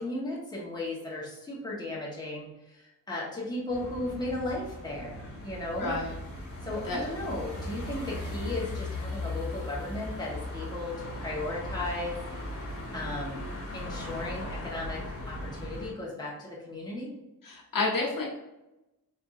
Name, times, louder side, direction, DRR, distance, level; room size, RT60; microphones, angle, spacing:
voice 1, 0.0-5.9 6.6-12.2 12.5-12.6 12.9-13.4 13.7-17.1, left 2 dB, 10° left, -5 dB, 1.3 m, -36 dB
sound 1, 3.7-15.9, left 1 dB, 40° left, 1.4 m, -38 dB
voice 2, 5.8-6.1 6.8-7.1 17.4-18.2, left 3 dB, 65° left, -3 dB, 1.3 m, -29 dB
4.5 x 3.5 x 2.6 m, 0.97 s
wide cardioid pair, 110°, 36 cm